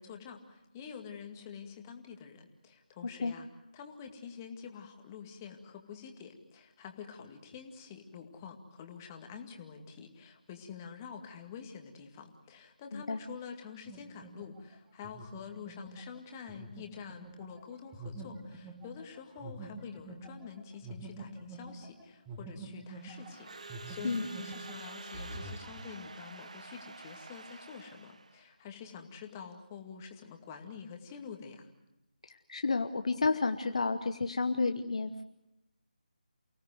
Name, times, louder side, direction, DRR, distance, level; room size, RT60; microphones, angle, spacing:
voice 1, 0.0-3.5 3.7-31.7, left 6 dB, 15° left, 4 dB, 2.1 m, -47 dB
sound 1, 13.9-23.4 23.7-25.8, right 2 dB, 10° right, 2.4 m, -46 dB
Crowd / Alarm, 22.9-28.5, right 3 dB, 50° right, 1.4 m, -48 dB
voice 2, 32.2-35.2, left 4 dB, 45° left, 8 dB, 1.1 m, -31 dB
29.0 x 18.0 x 7.9 m, 0.92 s
figure-of-eight pair, 155°, 5 cm